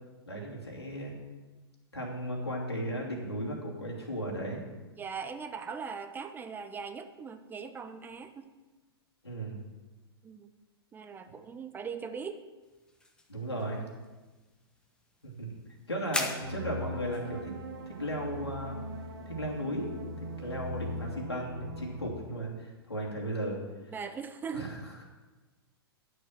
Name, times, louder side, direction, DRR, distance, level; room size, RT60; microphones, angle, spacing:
voice 1, 0.2-1.1 1.9-4.6 9.2-9.6 13.3-13.8 15.2-15.5 15.9-17.5 17.9-18.8 19.3-19.9 20.4-23.6 23.8-23.9 24.5-25.0, equal, 85° left, -2 dB, 2.7 m, -36 dB
voice 2, 5.0-8.5 10.2-10.5 10.9-12.4 23.9-24.7, right 6 dB, 15° right, 9 dB, 0.6 m, -40 dB
sound 1, 12.6-21.1, left 2 dB, 5° left, 1.1 m, -44 dB
sound 2, 16.4-22.1, equal, 70° right, 1.6 m, -40 dB
10.5 x 6.6 x 6.0 m, 1.2 s
figure-of-eight pair, 105°, 13 cm